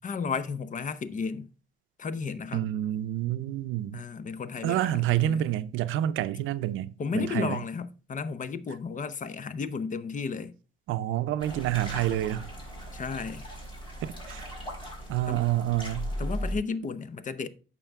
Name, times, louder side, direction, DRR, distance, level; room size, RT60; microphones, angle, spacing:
voice 1, 0.0-1.5 2.0-2.7 3.9-5.4 7.0-10.5 12.9-13.5 15.3-15.4 16.2-17.5, left 5 dB, 40° left, 0.8 m, -33 dB
voice 2, 2.5-4.0 4.6-7.6 10.9-12.5 14.0-14.5 15.1-16.1, right 13 dB, 90° right, 0.6 m, -28 dB
sound 1, 11.4-16.6, equal, 25° left, 5.2 m, -37 dB
8.8 x 6.2 x 3.5 m
cardioid pair, 90°, 20 cm